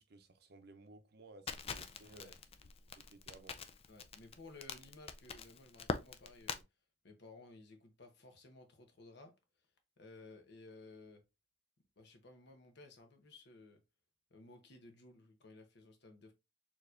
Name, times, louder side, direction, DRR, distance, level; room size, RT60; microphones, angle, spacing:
voice 1, 0.0-2.3 2.9-3.6, right 2 dB, 55° right, 0.6 m, -58 dB
Crackle, 1.5-6.6, left 5 dB, 30° left, 0.4 m, -43 dB
voice 2, 3.9-6.6 7.0-9.3 10.0-11.2 12.0-13.8 14.3-16.3, left 2 dB, 60° left, 0.9 m, -57 dB
4.4 x 3.0 x 2.5 m
head